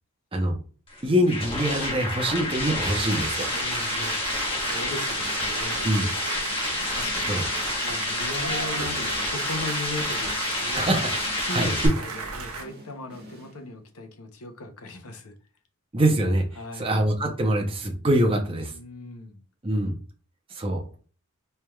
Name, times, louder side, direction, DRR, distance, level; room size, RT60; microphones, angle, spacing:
sound 1, 0.9-11.9, left 2 dB, 25° left, 1.1 m, -29 dB
voice 1, 1.0-3.5 5.8-6.0 7.3-7.5 10.7-11.1 11.5-11.7 15.9-16.4 16.7-18.7 19.6-20.0 20.5-21.0, right 1 dB, 25° right, 0.7 m, -24 dB
sound 2, 2.8-12.6, right 4 dB, 80° right, 0.9 m, -35 dB
voice 2, 3.5-4.2 4.6-5.8 6.6-7.5 7.8-11.0 11.4-15.4 16.5-16.9 18.7-19.4, left 2 dB, 80° left, 0.8 m, -38 dB
sound 3, 5.1-13.9, equal, 45° right, 1.3 m, -48 dB
4.5 x 3.3 x 2.3 m
head